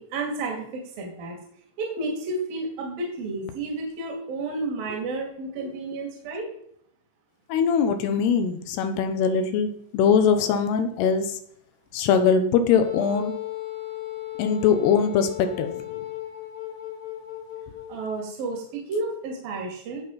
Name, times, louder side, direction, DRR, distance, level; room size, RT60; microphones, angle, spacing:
voice 1, 0.0-1.4 1.8-6.5 17.9-20.0, right 2 dB, 60° right, 1 dB, 3.9 m, -31 dB
voice 2, 7.5-11.2 11.9-13.3 14.4-15.8, left 6 dB, 75° left, 7 dB, 3.2 m, -22 dB
Wind instrument woodwind instrument, 12.8-17.9, left 14 dB, 55° left, 3.7 m, -36 dB
17.0 x 6.2 x 5.5 m, 0.68 s
omnidirectional pair, 4.9 m